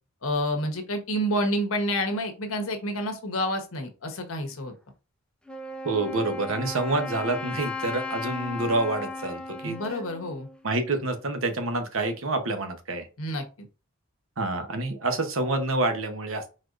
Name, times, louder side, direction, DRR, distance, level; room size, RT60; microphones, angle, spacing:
voice 1, 0.2-4.7 9.6-10.5 13.2-13.4, equal, 75° left, 5 dB, 1.1 m, -28 dB
Wind instrument woodwind instrument, 5.5-11.2, left 3 dB, 5° left, 0.4 m, -36 dB
voice 2, 5.8-9.8 10.6-13.1 14.4-16.5, right 2 dB, 70° right, 7 dB, 1.0 m, -27 dB
4.6 x 4.3 x 2.5 m, 0.32 s
head